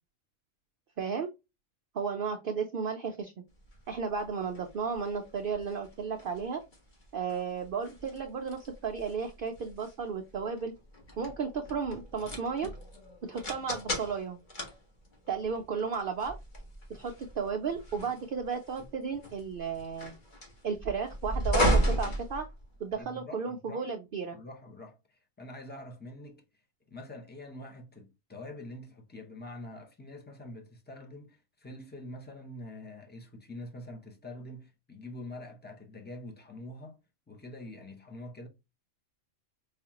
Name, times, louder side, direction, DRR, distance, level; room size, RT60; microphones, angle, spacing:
voice 1, 1.0-1.3 1.9-3.3 3.9-6.6 7.1-10.7 11.2-12.7 13.2-14.4 15.3-16.3 16.9-20.1 20.6-22.4 22.8-24.4, right 6 dB, 70° right, 0.5 m, -34 dB
sound 1, 3.6-23.0, equal, 35° left, 1.2 m, -35 dB
voice 2, 22.9-23.8 24.3-26.4 26.9-37.0 37.3-38.5, left 1 dB, 15° left, 0.4 m, -45 dB
4.9 x 2.4 x 2.8 m
omnidirectional pair, 1.4 m